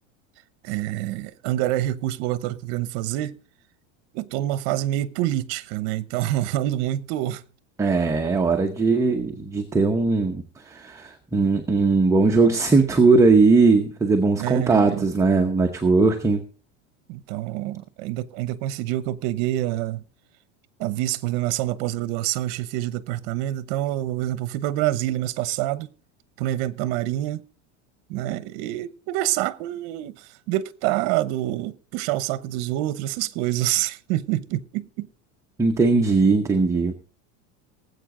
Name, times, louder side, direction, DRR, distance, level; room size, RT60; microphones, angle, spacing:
voice 1, 0.6-3.4 4.1-7.4 14.3-15.0 17.1-20.0 20.8-25.9 26.4-27.4 28.1-35.1, right 14 dB, 55° right, 0.9 m, -27 dB
voice 2, 7.8-10.4 10.7-16.4 35.6-36.9, right 3 dB, 10° right, 0.8 m, -19 dB
19.0 x 8.1 x 3.8 m
supercardioid pair, 155°, 34 cm